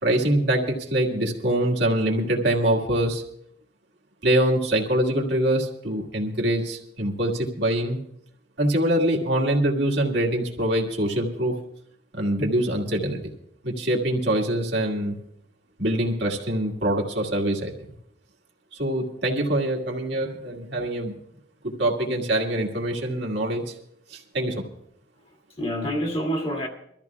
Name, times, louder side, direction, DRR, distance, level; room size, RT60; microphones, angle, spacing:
voice 1, 0.0-3.2 4.2-8.0 8.6-11.5 12.1-13.2 13.6-15.2 15.8-17.7 18.8-21.1 21.6-23.7 24.1-24.6, right 1 dB, 65° right, -1 dB, 1.9 m, -24 dB
voice 2, 25.2-26.7, equal, 30° left, 0 dB, 2.3 m, -29 dB
24.5 x 13.5 x 2.4 m, 0.74 s
head